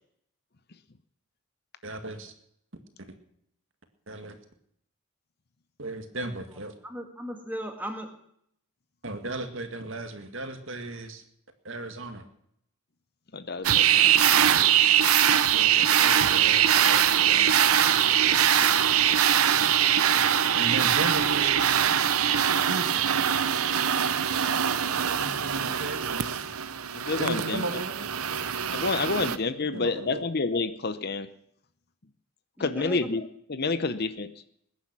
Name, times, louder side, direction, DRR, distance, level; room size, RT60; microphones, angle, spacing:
voice 1, 1.8-2.3 3.0-3.1 4.1-4.4 5.8-6.7 9.0-11.2 11.6-12.2 15.5-17.7 20.6-22.0 22.7-23.1 25.2-26.4 27.2-28.2 29.7-30.2, right 2 dB, 60° right, 7 dB, 2.1 m, -36 dB
voice 2, 6.8-8.1 32.6-33.2, equal, 10° right, 4 dB, 2.0 m, -37 dB
voice 3, 13.3-14.5 26.9-27.6 28.7-31.3 32.6-34.3, left 3 dB, 45° left, 12 dB, 0.8 m, -29 dB
sound 1, 13.6-29.4, right 9 dB, 80° right, 0.9 m, -22 dB
20.5 x 10.0 x 6.1 m, 0.70 s
head